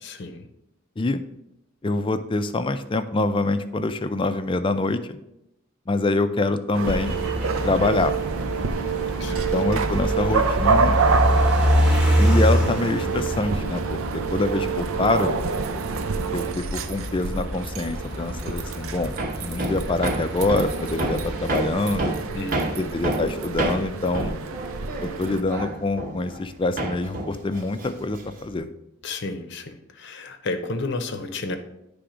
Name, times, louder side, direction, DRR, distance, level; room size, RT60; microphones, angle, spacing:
voice 1, 0.0-0.5 9.2-9.5 16.2-16.3 22.3-23.0 29.0-31.6, left 3 dB, 60° left, 8 dB, 0.7 m, -32 dB
voice 2, 1.8-5.2 5.9-7.1 7.6-8.1 9.3-11.0 12.2-15.4 16.3-19.2 19.4-22.1 22.8-24.3 25.0-28.7, left 2 dB, 25° left, 10 dB, 0.4 m, -25 dB
sound 1, 6.7-25.4, right 5 dB, 80° right, 0.6 m, -27 dB
sound 2, 6.9-21.5, equal, 5° right, 1.0 m, -26 dB
Hammer, 19.2-26.5 26.8-28.5, right 2 dB, 45° right, 1.0 m, -29 dB
9.9 x 3.5 x 4.9 m, 0.86 s
head